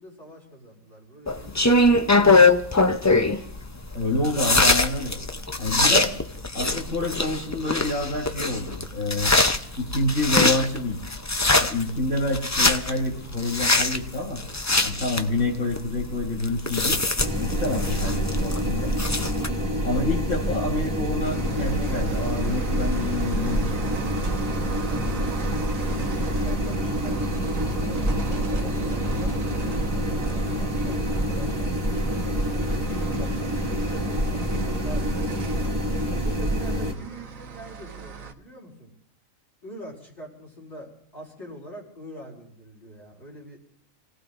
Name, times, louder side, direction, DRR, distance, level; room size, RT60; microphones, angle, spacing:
voice 1, 0.0-2.6 5.9-6.3 26.2-32.4 32.9-35.5 36.1-38.9 39.6-43.6, equal, 60° left, -6 dB, 4.9 m, -44 dB
sound 1, 1.3-19.5, left 2 dB, 25° left, 0.4 m, -23 dB
voice 2, 3.9-5.1 5.6-6.1 6.5-9.4 9.8-11.0 11.6-14.4 14.8-17.0 17.4-18.9 19.8-24.1, left 2 dB, 80° left, -3 dB, 5.7 m, -28 dB
sound 2, 17.2-36.9, equal, 20° right, 2.3 m, -27 dB
sound 3, 21.2-38.3, right 6 dB, 80° right, 1.5 m, -36 dB
28.5 x 17.5 x 2.6 m, 0.69 s
omnidirectional pair, 1.4 m